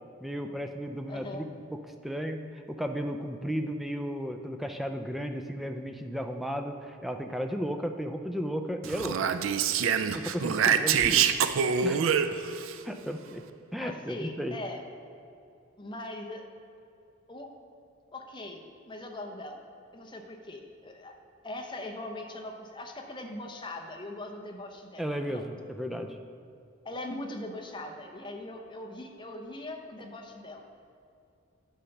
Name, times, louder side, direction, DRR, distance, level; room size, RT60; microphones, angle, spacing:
voice 1, 0.2-1.5 2.0-9.3 10.1-11.3 11.8-12.0 12.3-12.4 12.9-13.4 13.7-14.6 25.0-26.2, equal, ahead, 5 dB, 0.4 m, -34 dB
voice 2, 1.1-1.5 13.8-14.8 15.8-16.5 17.3-17.5 18.1-19.6 19.9-21.2 21.4-25.0 25.3-25.4 26.8-30.6, left 1 dB, 25° left, 2 dB, 0.7 m, -40 dB
Speech, 8.8-12.7, right 7 dB, 80° right, 0.4 m, -26 dB
10.0 x 5.3 x 5.8 m, 2.6 s
head